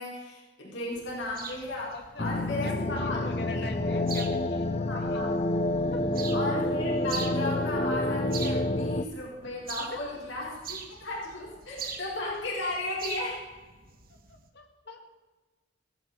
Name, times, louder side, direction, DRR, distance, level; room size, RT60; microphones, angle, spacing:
voice 1, 0.0-3.3 3.5-3.6 4.9-5.3 6.3-10.8 11.0-13.4, left 2 dB, 80° left, -4 dB, 4.6 m, -35 dB
voice 2, 0.6-1.0 1.9-5.2 5.9-6.3 9.9-10.0 14.3-15.2, left 3 dB, 60° left, 3 dB, 2.3 m, -45 dB
sound 1, 0.9-14.5, right 6 dB, 50° right, 1.6 m, -44 dB
sound 2, 2.2-9.0, left 1 dB, 35° left, 0.7 m, -28 dB
17.0 x 15.0 x 4.4 m, 1.3 s
head